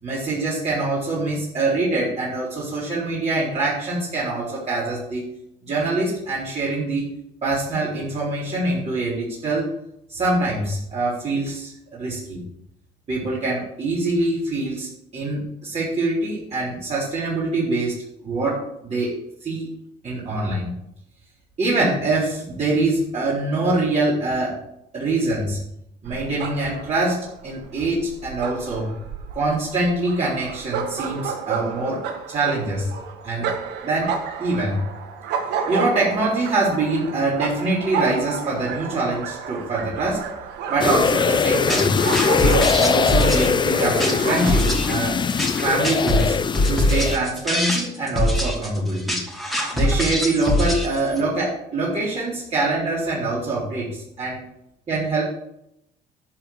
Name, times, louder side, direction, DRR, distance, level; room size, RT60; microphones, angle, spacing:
voice 1, 0.0-5.2 5.6-7.2 7.4-9.7 10.1-12.4 13.1-17.9 18.2-19.1 19.4-19.7 20.0-20.7 21.6-24.6 24.9-25.6 26.0-28.9 29.3-32.0 32.3-32.9 33.2-33.5 33.8-34.1 34.4-34.8 35.7-40.2 40.7-42.0 42.4-45.2 45.6-46.4 46.7-49.2 49.7-54.4 54.9-55.2, right 2 dB, 40° right, -8 dB, 4.1 m, -24 dB
sound 1, 26.0-44.5, right 6 dB, 85° right, 1.6 m, -31 dB
sound 2, 40.8-47.2, left 6 dB, 25° left, 0.5 m, -21 dB
sound 3, 41.7-51.2, left 1 dB, ahead, 2.3 m, -23 dB
11.5 x 4.9 x 7.7 m, 0.80 s
cardioid pair, 110°, 17 cm